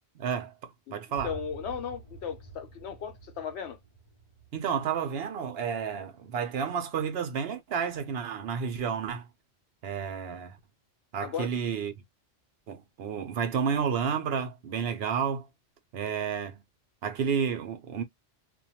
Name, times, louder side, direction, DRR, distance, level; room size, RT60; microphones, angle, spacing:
voice 1, 0.2-1.3 4.5-9.3 9.8-10.6 11.1-11.9 12.7-15.5 15.9-16.6 17.0-18.0, right 7 dB, 70° right, 0.9 m, -31 dB
sound 1, 1.1-6.7, right 3 dB, 35° right, 0.8 m, -49 dB
voice 2, 1.2-3.8 11.2-11.5, left 7 dB, 85° left, 1.0 m, -36 dB
2.5 x 2.2 x 2.7 m
omnidirectional pair, 1.1 m